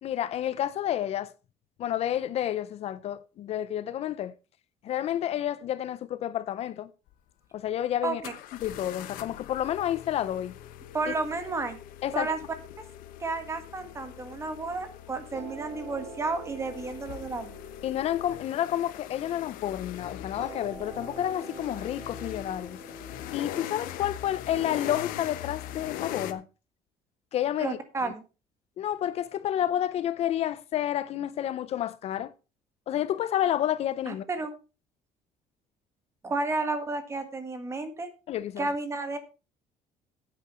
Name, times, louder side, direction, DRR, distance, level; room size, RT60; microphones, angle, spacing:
voice 1, 0.0-1.3 1.8-4.3 4.8-6.9 7.5-8.2 8.6-10.5 12.0-12.3 17.8-22.8 23.3-26.4 27.3-27.8 28.0-28.1 28.8-32.3 32.9-34.2 38.3-38.7, left 11 dB, 50° left, 0.5 m, -30 dB
sound 1, 7.1-7.2 8.2-26.3, left 12 dB, 85° left, 1.0 m, -41 dB
voice 2, 8.0-8.3 10.9-11.8 12.1-12.4 13.2-17.6 27.6-28.2 34.1-34.5 36.2-38.1 38.6-39.2, right 3 dB, 20° right, 1.6 m, -32 dB
sound 2, 15.3-19.7 20.4-25.3, right 3 dB, 60° right, 2.9 m, -46 dB
9.8 x 8.7 x 4.3 m
cardioid pair, 160°, 14 cm